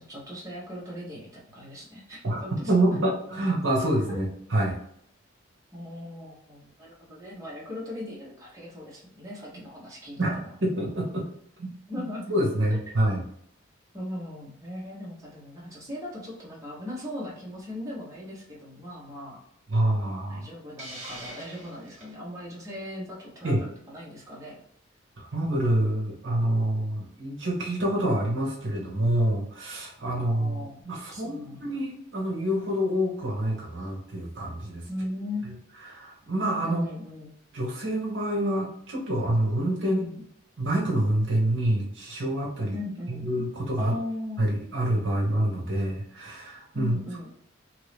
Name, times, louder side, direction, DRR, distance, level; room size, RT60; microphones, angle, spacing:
voice 1, 0.0-2.7 4.1-4.2 5.7-10.2 11.9-12.3 13.9-19.4 20.3-24.6 30.1-30.8 31.1-31.7 34.9-35.6 36.6-37.3 39.8-40.2 42.7-43.3 43.8-44.7 46.7-47.3, left 1 dB, 15° right, -6 dB, 0.9 m, -38 dB
voice 2, 2.2-4.8 10.2-11.3 11.6-11.7 12.3-13.2 19.7-20.5 23.4-23.6 25.2-34.9 35.4-35.5 35.8-36.9 37.5-40.0 40.6-42.7 43.1-44.0 44.4-47.0, right 1 dB, 65° right, -1 dB, 0.8 m, -27 dB
Hiss, 20.8-22.1, right 1 dB, 35° right, 1.1 m, -42 dB
3.0 x 2.6 x 3.3 m, 0.70 s
head